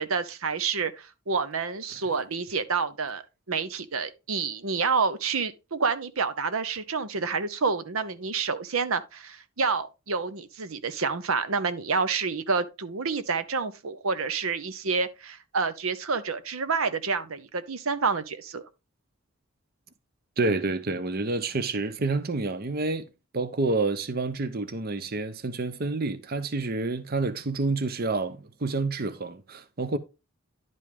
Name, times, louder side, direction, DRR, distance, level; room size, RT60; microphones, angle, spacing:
voice 1, 0.0-18.6, right 5 dB, 80° right, 0.9 m, -28 dB
voice 2, 20.4-23.1 23.3-30.0, right 3 dB, 45° right, 0.8 m, -28 dB
11.0 x 5.4 x 3.5 m
head